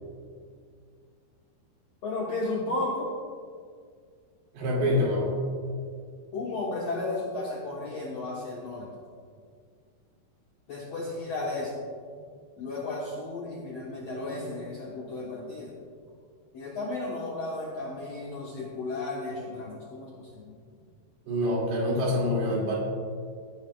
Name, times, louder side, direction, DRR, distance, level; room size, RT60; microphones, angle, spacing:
voice 1, 2.0-3.1 6.3-8.9 10.7-11.7 12.6-15.7 16.5-20.6, left 2 dB, 70° left, -5 dB, 1.5 m, -34 dB
voice 2, 4.5-5.3 21.3-22.8, left 1 dB, 75° right, -4 dB, 4.5 m, -26 dB
16.0 x 10.5 x 2.3 m, 2.1 s
omnidirectional pair, 4.7 m